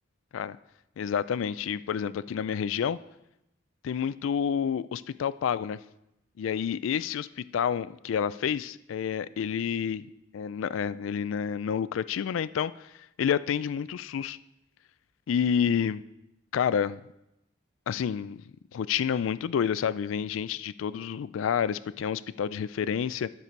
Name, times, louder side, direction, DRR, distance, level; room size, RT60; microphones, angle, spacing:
voice 1, 1.0-3.0 3.8-5.8 6.4-7.3 7.5-10.0 10.3-12.9 13.2-14.4 15.3-16.0 16.5-17.0 17.9-18.4 18.7-23.3, left 7 dB, 80° left, 18 dB, 0.3 m, -29 dB
9.8 x 6.7 x 4.5 m, 0.88 s
head